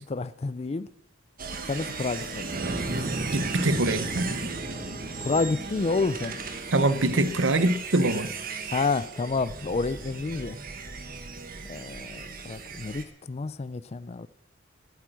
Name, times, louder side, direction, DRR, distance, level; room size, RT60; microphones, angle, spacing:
voice 1, 0.1-0.9 1.7-2.6 5.2-6.4 8.7-10.6 11.7-14.3, left 3 dB, 35° left, 0.4 m, -29 dB
sound 1, 1.4-13.0, right 3 dB, 50° right, 1.4 m, -35 dB
voice 2, 3.3-4.3 6.7-8.3, right 2 dB, 80° right, 1.0 m, -24 dB
17.0 x 8.4 x 6.3 m
head